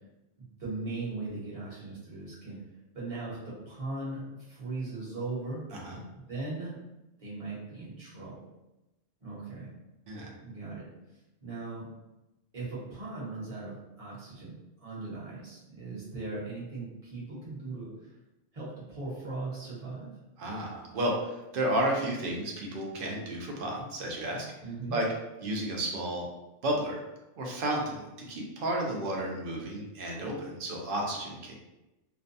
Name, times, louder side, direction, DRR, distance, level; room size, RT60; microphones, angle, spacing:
voice 1, 0.4-2.6 2.9-5.6 6.1-6.9 7.2-8.4 9.2-9.7 10.4-10.9 11.4-11.9 12.5-18.1 18.5-20.1 24.6-25.0, right 3 dB, 30° right, -8 dB, 0.9 m, -39 dB
voice 2, 5.7-6.0 10.1-10.3 20.4-24.5 24.9-25.0 25.4-26.3 26.6-27.0 27.4-31.5, right 1 dB, 60° right, -1 dB, 0.6 m, -32 dB
2.5 x 2.1 x 2.5 m, 0.98 s
omnidirectional pair, 1.3 m